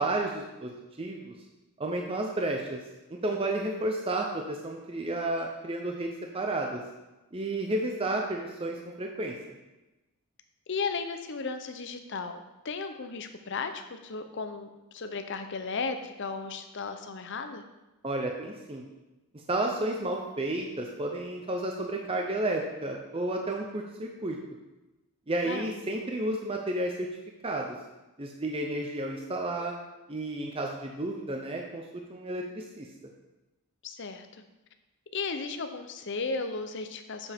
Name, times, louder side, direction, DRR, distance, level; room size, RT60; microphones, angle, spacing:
voice 1, 0.0-1.3 1.8-2.8 3.1-6.8 7.3-9.3 18.0-18.8 19.5-24.4 25.3-27.1 27.4-27.7 28.2-29.7 30.1-31.8 32.1-32.9, right 2 dB, 25° right, 1 dB, 0.6 m, -31 dB
voice 2, 10.7-17.6 25.4-25.8 33.8-34.4 35.1-37.3, left 4 dB, 55° left, 7 dB, 0.7 m, -35 dB
8.2 x 7.1 x 3.6 m, 1.0 s
head